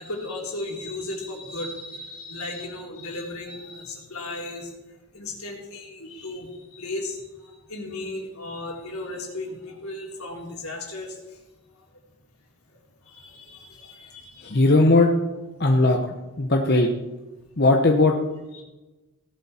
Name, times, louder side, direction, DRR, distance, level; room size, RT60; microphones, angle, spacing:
voice 1, 0.0-4.7 5.1-11.4 13.0-14.6 18.5-18.6, left 2 dB, 80° left, 0 dB, 3.5 m, -35 dB
voice 2, 14.4-15.1 15.6-16.9 17.6-18.2, left 2 dB, 45° left, 3 dB, 1.0 m, -18 dB
17.0 x 11.5 x 4.4 m, 1.1 s
head